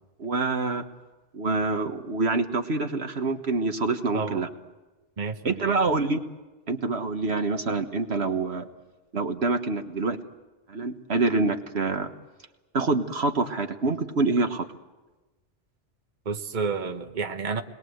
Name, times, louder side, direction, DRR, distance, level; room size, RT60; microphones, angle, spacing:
voice 1, 0.2-0.8 1.3-4.5 5.4-6.2 6.7-8.7 9.1-10.2 10.7-12.1 12.7-14.7, right 3 dB, 65° right, 6 dB, 1.6 m, -26 dB
voice 2, 5.2-5.8 16.2-17.6, right 5 dB, 45° right, 5 dB, 1.4 m, -30 dB
28.5 x 21.5 x 8.0 m, 1.2 s
omnidirectional pair, 1.2 m